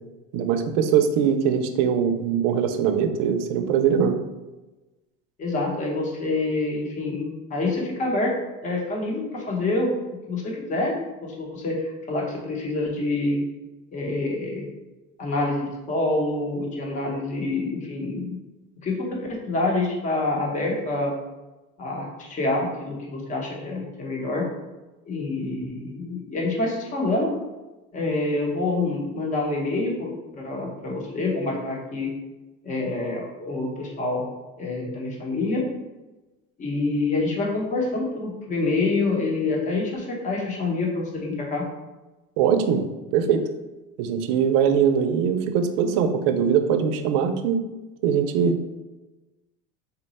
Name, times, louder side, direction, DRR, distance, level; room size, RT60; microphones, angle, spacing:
voice 1, 0.3-4.2 42.4-42.8 43.1-43.4 44.0-47.6 48.0-48.6, right 7 dB, 75° right, 7 dB, 0.5 m, -21 dB
voice 2, 5.4-8.3 8.6-9.9 10.3-10.9 11.2-13.4 13.9-14.7 15.2-18.4 18.8-19.0 19.3-21.1 21.8-24.4 25.1-27.3 27.9-32.1 32.6-34.2 34.6-35.6 36.6-41.6, left 2 dB, 25° left, -1 dB, 0.8 m, -26 dB
3.9 x 2.2 x 4.0 m, 1.1 s
cardioid pair, 155°, 29 cm